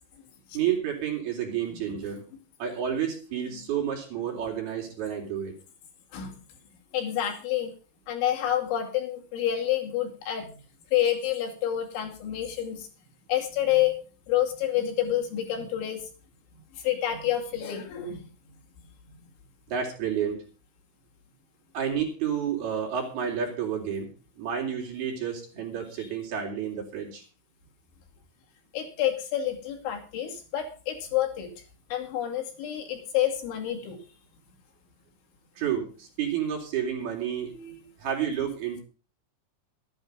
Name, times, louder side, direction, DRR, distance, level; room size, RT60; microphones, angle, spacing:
voice 1, 0.5-2.2 2.6-5.5 19.7-20.4 21.7-24.1 24.4-27.2 35.6-37.5 38.0-38.8, right 8 dB, 55° right, 0 dB, 5.3 m, -30 dB
voice 2, 6.9-7.7 8.1-10.5 10.9-12.9 13.3-14.0 14.3-16.0 16.8-18.2 26.0-26.1 28.7-31.5 31.9-34.0 37.5-37.7, left 11 dB, 75° left, 1 dB, 4.7 m, -28 dB
13.5 x 11.0 x 5.3 m, 0.38 s
omnidirectional pair, 5.6 m